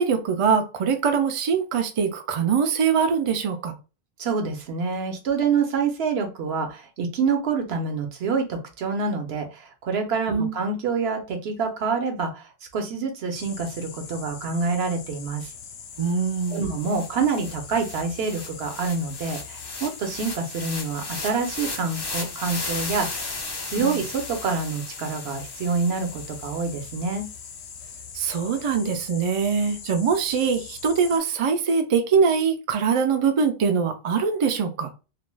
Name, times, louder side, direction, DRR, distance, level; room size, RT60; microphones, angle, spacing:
voice 1, 0.0-3.7 10.3-10.5 16.0-16.6 23.8-24.0 28.1-34.9, right 6 dB, 55° right, 0.3 m, -23 dB
voice 2, 4.2-12.4 12.7-15.5 16.5-23.3 23.6-27.3, right 5 dB, 75° right, 0.9 m, -27 dB
sound 1, 13.3-31.2, left 7 dB, 80° left, 0.8 m, -42 dB
sound 2, 16.1-16.2 16.4-26.8, left 2 dB, 30° left, 0.5 m, -36 dB
2.4 x 2.2 x 3.1 m
omnidirectional pair, 1.1 m